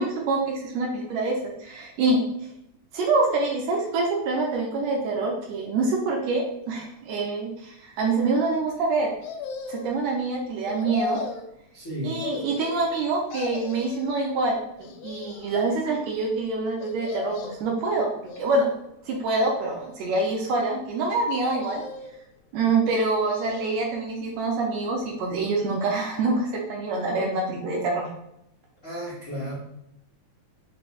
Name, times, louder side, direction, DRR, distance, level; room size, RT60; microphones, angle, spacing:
voice 1, 0.0-2.2 2.9-9.1 9.7-11.2 12.0-18.1 18.4-18.7 19.1-21.8 22.5-28.1, right 3 dB, 75° right, -1 dB, 1.8 m, -26 dB
sound 1, 9.2-10.0 10.7-11.5 12.2-13.0 13.3-14.2 14.8-15.6 16.8-17.7 18.2-18.9 19.6-20.4 21.4-22.2 22.9-23.9 24.2-24.3, left 5 dB, 90° left, 2.1 m, -37 dB
voice 2, 11.7-12.2 28.8-29.5, equal, 70° left, -9 dB, 0.7 m, -33 dB
4.8 x 2.2 x 3.8 m, 0.81 s
omnidirectional pair, 3.5 m